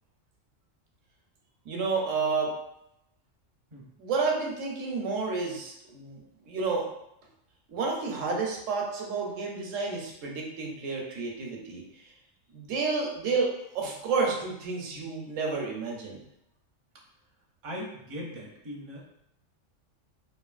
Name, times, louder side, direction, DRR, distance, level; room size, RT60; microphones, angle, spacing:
voice 1, 1.6-2.5 4.0-6.9 7.7-12.1 12.5-16.2, right 4 dB, 80° right, 0 dB, 1.0 m, -30 dB
voice 2, 17.6-19.1, equal, 35° right, -4 dB, 0.5 m, -39 dB
3.0 x 2.6 x 2.4 m, 0.80 s
omnidirectional pair, 1.3 m